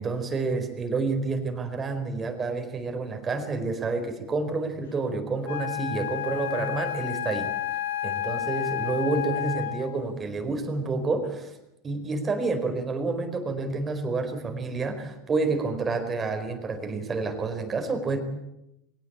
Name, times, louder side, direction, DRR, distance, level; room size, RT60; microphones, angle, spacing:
voice 1, 0.0-7.5 8.0-11.5 11.8-18.2, right 3 dB, 25° right, 6 dB, 4.6 m, -29 dB
Wind instrument woodwind instrument, 5.4-10.0, left 11 dB, 65° left, 1.6 m, -31 dB
23.0 x 18.0 x 8.7 m, 0.86 s
figure-of-eight pair, 80°, 0 cm